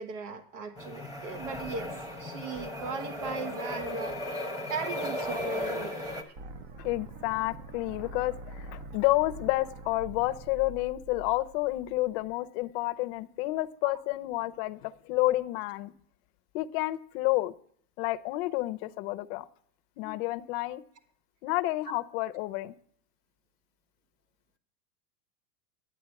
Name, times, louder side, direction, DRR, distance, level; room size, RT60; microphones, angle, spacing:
voice 1, 0.0-1.9 2.2-4.2 4.7-5.9, right 4 dB, 80° right, 8 dB, 1.4 m, -37 dB
sound 1, 0.8-6.2, left 1 dB, 10° right, 1.0 m, -36 dB
sound 2, 6.4-12.3, right 2 dB, 25° right, 0.4 m, -45 dB
voice 2, 6.8-15.9 16.5-17.5 18.0-19.5 20.0-20.8 21.4-22.7, left 18 dB, 45° left, 12 dB, 0.6 m, -30 dB
11.0 x 8.4 x 5.8 m, 0.62 s
supercardioid pair, 140°, 47 cm